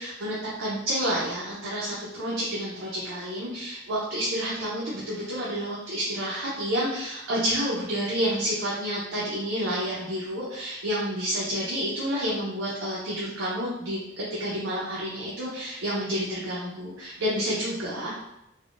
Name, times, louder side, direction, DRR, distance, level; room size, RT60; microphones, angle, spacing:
voice 1, 0.0-18.2, equal, 75° right, -6 dB, 0.6 m, -29 dB
3.4 x 2.1 x 2.4 m, 0.84 s
head